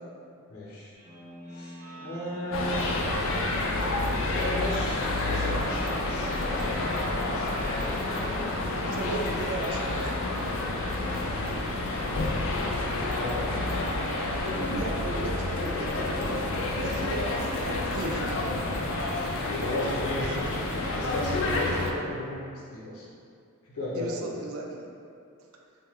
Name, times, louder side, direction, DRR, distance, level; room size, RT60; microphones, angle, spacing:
voice 1, 0.5-0.9 1.5-2.9 4.3-6.7 7.1-7.6 8.0-8.6 12.6-14.1 14.4-14.8 15.7-15.8 19.6-20.4 20.7-22.4 22.7-23.0 23.6-24.3, left 1 dB, 85° left, -6 dB, 0.7 m, -35 dB
Guitar, 0.9-11.6, right 1 dB, 35° right, 0.6 m, -45 dB
sound 1, 2.5-21.9, left 2 dB, 60° left, 0.3 m, -29 dB
voice 2, 8.9-10.2 14.7-18.4 18.9-19.1 19.6-19.8 20.2-20.6 23.9-24.9, right 2 dB, 75° right, 0 dB, 0.3 m, -36 dB
2.6 x 2.1 x 3.3 m, 2.5 s
head